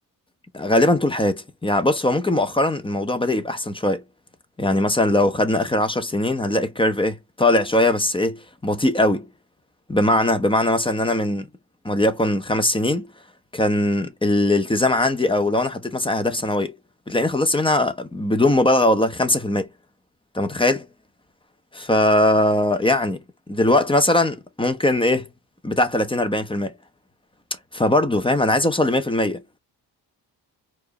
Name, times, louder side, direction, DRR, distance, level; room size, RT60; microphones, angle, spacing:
voice 1, 0.5-4.0 4.6-9.3 9.9-11.5 11.8-13.1 13.5-16.7 17.1-19.7 20.3-20.8 21.7-23.2 23.5-25.3 25.6-26.7 27.7-29.4, left 1 dB, 10° left, 1.0 m, -20 dB
4.5 x 2.8 x 3.1 m
cardioid pair, 85°, 41 cm